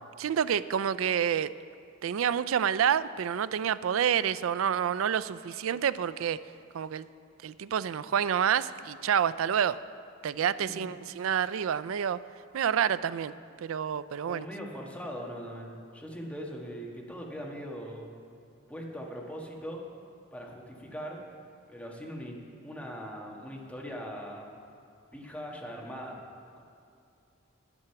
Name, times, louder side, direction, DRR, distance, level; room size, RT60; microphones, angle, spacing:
voice 1, 0.2-1.5 2.0-6.4 6.7-7.0 7.4-9.8 10.2-12.2 12.5-13.3 13.6-14.5, right 8 dB, 80° right, 16 dB, 0.4 m, -28 dB
voice 2, 10.6-10.9 14.2-18.1 18.7-19.8 20.3-21.2 21.7-24.5 25.1-26.2, equal, 5° left, -2 dB, 1.5 m, -40 dB
11.0 x 9.8 x 5.8 m, 2.5 s
head